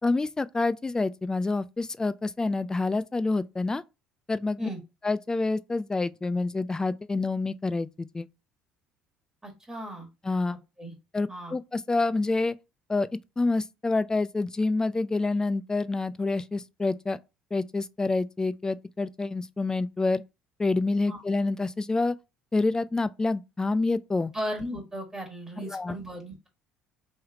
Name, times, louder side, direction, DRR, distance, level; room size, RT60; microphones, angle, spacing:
voice 1, 0.0-3.8 4.3-4.6 5.0-8.3 10.2-10.6 11.1-12.6 12.9-13.1 13.4-17.2 17.5-20.2 20.6-22.2 22.5-24.3 25.6-26.0, left 3 dB, 20° left, 0.3 m, -27 dB
voice 2, 9.4-10.1 10.5-10.9 11.3-11.5 21.1-21.2 24.3-26.5, equal, 15° right, 1.7 m, -36 dB
3.2 x 3.1 x 3.5 m
hypercardioid pair, 60°, 4 cm